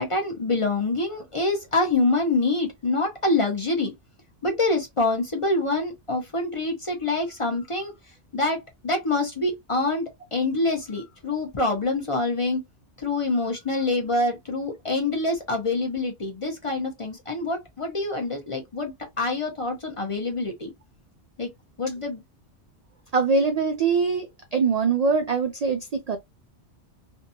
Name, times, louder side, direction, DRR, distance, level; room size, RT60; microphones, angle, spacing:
voice 1, 0.0-3.9 4.4-7.9 8.3-12.6 13.0-20.7 21.4-21.5 21.8-22.2, left 2 dB, 35° left, 0.6 m, -26 dB
voice 2, 23.1-26.2, right 4 dB, 70° right, 0.3 m, -23 dB
2.6 x 2.2 x 2.6 m
omnidirectional pair, 1.2 m